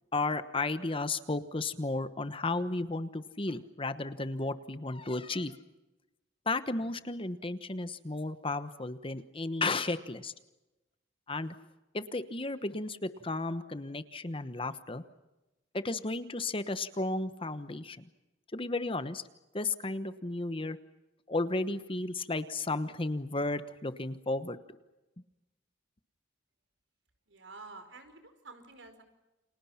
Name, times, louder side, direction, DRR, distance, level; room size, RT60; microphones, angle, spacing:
voice 1, 0.1-5.6 6.5-10.3 11.3-11.5 11.9-15.0 15.7-18.0 18.5-19.2 19.5-20.8 21.3-24.6, left 2 dB, 30° left, 12 dB, 1.1 m, -33 dB
voice 2, 27.3-29.0, right 3 dB, 80° right, 8 dB, 5.0 m, -50 dB
30.0 x 27.0 x 5.8 m, 1.0 s
head